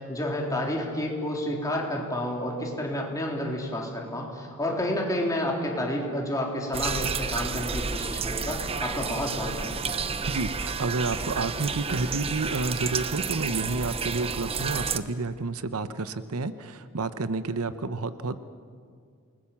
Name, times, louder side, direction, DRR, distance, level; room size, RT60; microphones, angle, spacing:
voice 1, 0.1-10.0, left 1 dB, 15° left, -1 dB, 3.6 m, -30 dB
sound 1, 6.7-15.0, right 5 dB, 25° right, 0.7 m, -31 dB
voice 2, 10.3-18.4, right 3 dB, 80° right, 12 dB, 0.9 m, -30 dB
28.5 x 20.0 x 7.2 m, 2.2 s
head